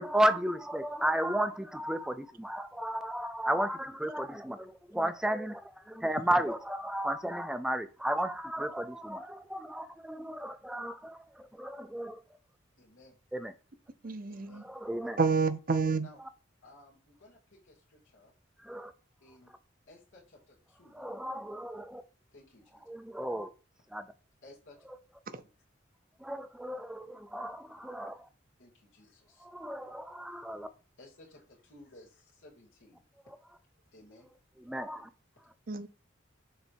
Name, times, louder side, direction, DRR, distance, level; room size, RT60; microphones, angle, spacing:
voice 1, 0.0-12.2 13.3-13.5 14.6-15.2 18.6-18.9 20.9-22.0 22.9-23.5 23.9-24.0 26.2-28.3 29.4-30.7 34.7-35.1, right 1 dB, 5° right, 0.4 m, -33 dB
voice 2, 12.8-13.2 14.3-14.7 16.0-16.2 16.6-18.3 19.2-19.5 19.9-21.1 22.3-22.7 24.4-24.8 25.3-25.5 28.6-29.5 31.0-33.0 33.9-34.3, left 2 dB, 85° left, 2.5 m, -57 dB
voice 3, 14.0-14.6 15.2-16.1 25.3-25.4 35.7-35.9, right 4 dB, 45° right, 0.6 m, -29 dB
6.8 x 3.4 x 4.5 m
head